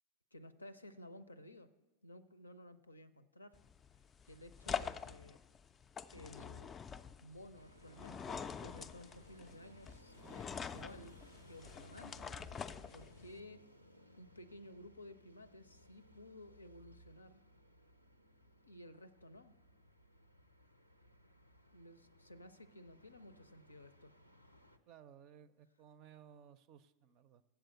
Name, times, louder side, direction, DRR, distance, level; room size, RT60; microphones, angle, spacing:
voice 1, 0.3-1.7 2.0-3.6 4.3-5.4 6.1-6.8 7.2-11.2 11.5-12.3 12.9-13.6 14.2-17.4 18.6-19.5 21.7-24.1, left 1 dB, 80° left, 12 dB, 0.5 m, -55 dB
sound 1, 3.5-13.4, left 6 dB, 20° left, 0.3 m, -46 dB
sound 2, 7.5-24.8, equal, 90° right, 0.6 m, -62 dB
voice 2, 24.9-27.4, right 9 dB, 40° right, 15 dB, 0.5 m, -59 dB
7.7 x 7.0 x 8.2 m, 1.1 s
figure-of-eight pair, 90°, 0 cm